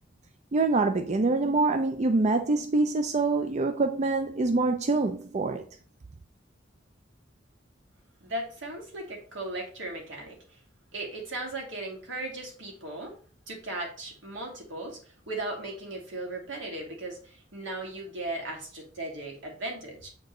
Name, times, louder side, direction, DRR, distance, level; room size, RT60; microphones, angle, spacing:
voice 1, 0.5-5.6, right 3 dB, 40° right, 0.5 m, -25 dB
voice 2, 8.2-10.4 10.9-13.1 13.5-15.0 15.3-20.1, right 2 dB, 80° right, 2.3 m, -37 dB
7.6 x 4.4 x 3.1 m
head